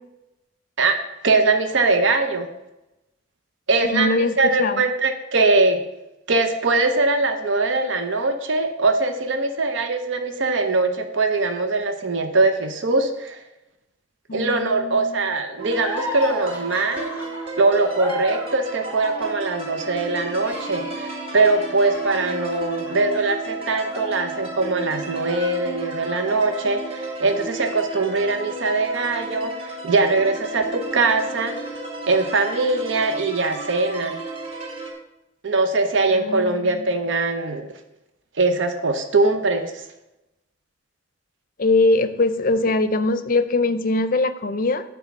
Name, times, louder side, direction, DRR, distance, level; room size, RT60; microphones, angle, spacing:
voice 1, 0.8-2.5 3.7-5.8 6.3-13.4 14.3-17.1 17.6-31.6 32.1-34.2 35.4-37.7 38.4-39.8, right 3 dB, 70° right, 6 dB, 0.7 m, -22 dB
voice 2, 3.8-4.8 14.3-15.2 36.1-36.9 41.6-44.8, left 2 dB, 45° left, 11 dB, 0.5 m, -22 dB
sound 1, 15.6-34.9, right 2 dB, 30° right, 1.6 m, -33 dB
sound 2, 15.7-24.8 25.2-26.2, left 1 dB, 10° right, 2.0 m, -36 dB
9.9 x 3.6 x 7.1 m, 0.94 s
head